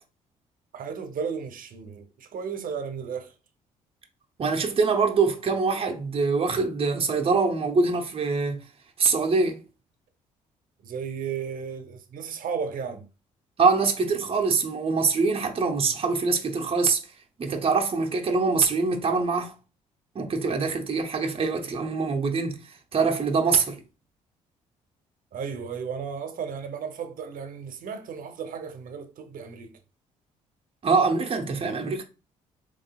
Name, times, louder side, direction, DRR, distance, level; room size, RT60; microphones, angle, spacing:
voice 1, 0.7-3.3 10.8-13.1 25.3-29.8, right 6 dB, 60° right, 0.8 m, -34 dB
voice 2, 4.4-8.6 9.0-9.6 13.6-17.0 17.4-19.5 20.1-23.8 30.8-32.0, right 4 dB, 35° right, 0.8 m, -24 dB
3.7 x 3.1 x 2.3 m
supercardioid pair, 55°, 16 cm